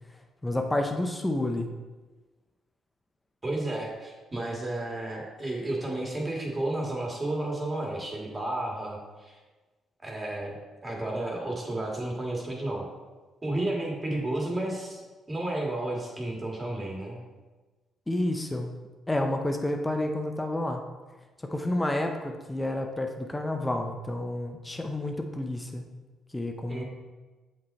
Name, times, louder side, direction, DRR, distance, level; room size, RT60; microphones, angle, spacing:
voice 1, 0.4-1.7 18.1-18.7 19.1-20.8 21.4-25.8 26.3-26.8, left 1 dB, 15° left, 4 dB, 0.7 m, -30 dB
voice 2, 3.4-9.4 10.0-10.5 10.8-12.9 13.4-17.2 26.7-26.8, right 1 dB, 20° right, -1 dB, 1.8 m, -32 dB
7.5 x 5.3 x 4.2 m, 1.3 s
cardioid pair, 90°, 0 cm